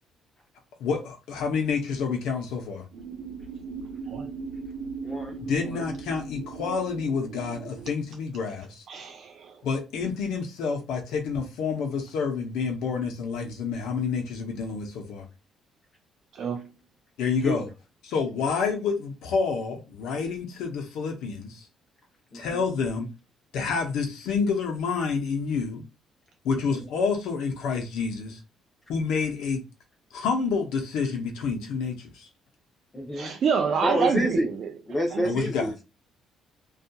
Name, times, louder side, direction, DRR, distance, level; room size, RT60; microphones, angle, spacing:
voice 1, 0.8-2.8 5.4-8.8 9.6-15.3 17.2-17.7 18.1-21.6 22.3-23.1 23.5-25.8 26.4-28.4 28.9-29.6 30.1-32.3 35.2-35.7, left 5 dB, 80° left, 0.6 m, -28 dB
sound 1, 2.9-7.9, right 4 dB, 85° right, 0.6 m, -38 dB
voice 2, 5.0-5.9 17.4-17.6 22.3-22.6 26.7-26.8 32.9-33.3 33.8-34.5 34.9-35.8, equal, 20° left, 0.6 m, -29 dB
voice 3, 8.9-9.6 16.3-16.7 33.1-34.7 35.1-35.4, right 6 dB, 50° right, 0.3 m, -27 dB
2.7 x 2.3 x 2.2 m
cardioid pair, 145°, 0 cm